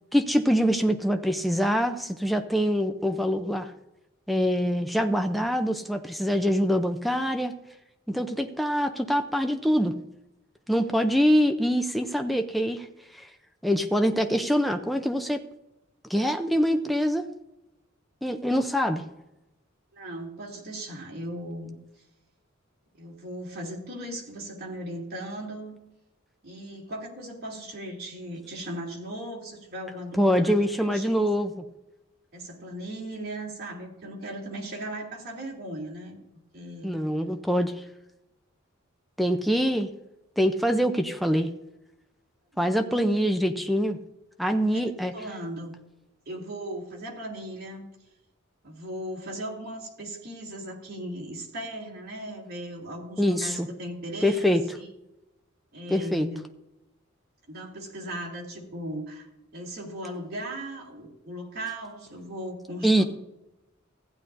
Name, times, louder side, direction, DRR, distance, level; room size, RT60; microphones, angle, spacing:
voice 1, 0.1-3.7 4.3-7.5 8.1-9.9 10.7-12.9 13.1-13.3 13.6-15.4 16.1-17.2 18.2-19.0 30.1-31.5 36.8-37.7 39.2-39.9 40.4-41.5 42.6-44.0 44.4-45.1 53.2-53.7 54.2-54.6 55.9-56.3 62.8-63.0, equal, ahead, 5 dB, 0.5 m, -24 dB
voice 2, 19.9-21.8 22.9-25.8 26.4-31.2 32.3-36.2 36.5-37.0 42.6-43.3 44.7-45.7 46.3-47.8 48.6-54.6 55.7-56.4 57.5-63.1, right 1 dB, 50° right, -3 dB, 2.7 m, -37 dB
15.5 x 10.0 x 2.6 m, 0.91 s
head